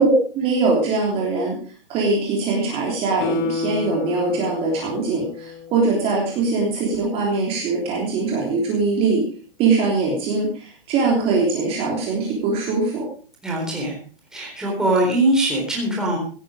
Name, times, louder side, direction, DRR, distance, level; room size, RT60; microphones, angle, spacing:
voice 1, 0.0-1.6 1.9-9.2 9.6-13.1, right 3 dB, 20° right, -2 dB, 3.3 m, -22 dB
Guitar, 3.2-6.5 6.8-6.9, left 4 dB, 25° left, 1.3 m, -30 dB
voice 2, 13.4-13.9 14.3-16.2, right 1 dB, ahead, -3 dB, 3.9 m, -21 dB
16.5 x 10.0 x 5.0 m, 0.40 s
hypercardioid pair, 165°, 29 cm